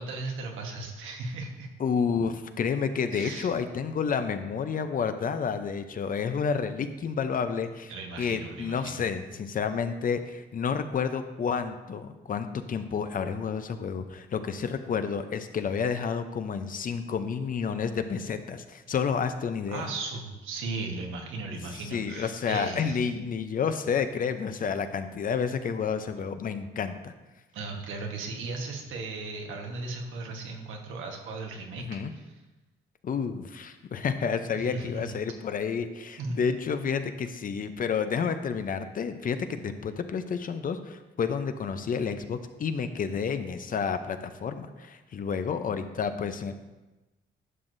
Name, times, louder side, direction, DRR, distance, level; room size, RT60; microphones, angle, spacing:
voice 1, 0.0-1.7 3.1-3.5 7.9-9.0 19.7-23.0 27.5-31.8 32.1-32.2 34.5-35.2 36.2-36.5, right 3 dB, 85° right, 2 dB, 1.3 m, -36 dB
voice 2, 1.8-7.9 8.2-19.9 21.5-27.1 31.8-32.1 33.0-46.5, left 6 dB, 45° left, 9 dB, 0.6 m, -30 dB
11.0 x 6.0 x 2.6 m, 1.1 s
cardioid pair, 90°, 20 cm